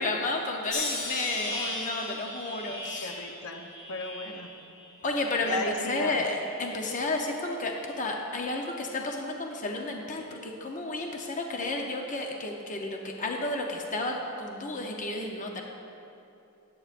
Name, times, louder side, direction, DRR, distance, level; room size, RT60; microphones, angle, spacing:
voice 1, 0.0-3.2 5.0-15.6, left 2 dB, 35° left, 1 dB, 0.7 m, -32 dB
sound 1, 0.7-5.9 6.3-7.0 7.7-8.0, left 2 dB, 55° left, 1.6 m, -38 dB
voice 2, 3.0-4.5 5.5-6.2, left 2 dB, 70° left, 4 dB, 0.8 m, -35 dB
13.5 x 9.4 x 2.5 m, 2.7 s
head